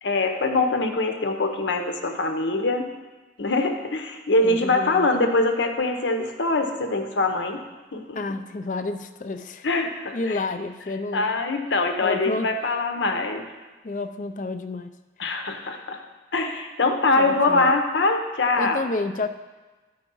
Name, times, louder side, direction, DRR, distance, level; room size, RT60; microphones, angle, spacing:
voice 1, 0.0-2.9 3.4-7.6 7.9-8.2 9.6-10.4 11.1-13.5 15.2-16.0 16.3-18.8, left 2 dB, 85° left, 5 dB, 0.9 m, -23 dB
voice 2, 4.4-5.1 8.1-9.7 10.1-11.3 12.0-12.5 13.8-14.9 15.3-15.4 17.2-17.7 18.5-19.3, left 3 dB, 45° left, 10 dB, 0.4 m, -30 dB
12.5 x 4.7 x 5.4 m, 1.2 s
head